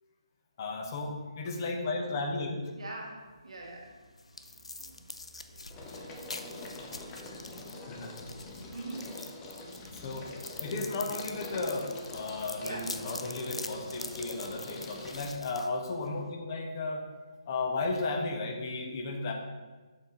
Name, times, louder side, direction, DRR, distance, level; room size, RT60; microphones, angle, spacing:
voice 1, 0.6-2.6 7.9-8.1 10.0-17.0 17.5-19.3, left 3 dB, 40° left, 2 dB, 1.3 m, -34 dB
voice 2, 2.7-3.9 4.8-5.0 8.7-9.1 12.6-13.1, right 2 dB, 75° right, -1 dB, 1.8 m, -42 dB
sound 1, 3.3-3.8 4.2-15.3, left 2 dB, 20° left, 0.9 m, -45 dB
sound 2, 3.6-16.3, left 2 dB, 85° left, 0.6 m, -45 dB
7.2 x 5.4 x 4.0 m, 1.3 s
figure-of-eight pair, 150°, 3 cm